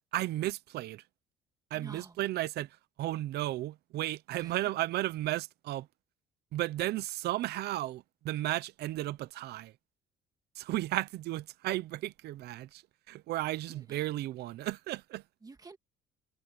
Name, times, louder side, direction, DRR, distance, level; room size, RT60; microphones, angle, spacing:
voice 1, 0.1-1.0 1.7-2.7 3.0-5.9 6.5-9.7 10.6-15.2, right 15 dB, 75° right, 0.9 m, -34 dB
voice 2, 1.7-2.2 4.3-4.6 13.7-14.0 15.4-15.8, right 3 dB, 20° right, 1.9 m, -50 dB
cardioid pair, 110°, 17 cm